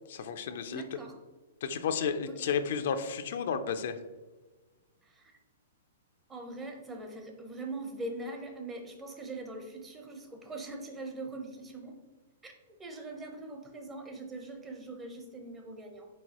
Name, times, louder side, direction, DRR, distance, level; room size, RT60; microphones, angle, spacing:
voice 1, 0.1-0.8 1.6-4.0, left 6 dB, 65° left, 9 dB, 0.3 m, -32 dB
voice 2, 0.7-1.2 2.3-2.5 5.0-5.3 6.3-12.0 12.4-12.5 12.8-16.1, right 2 dB, 15° right, 3 dB, 0.7 m, -42 dB
4.6 x 3.7 x 2.9 m, 1.2 s
hypercardioid pair, 140°, 0 cm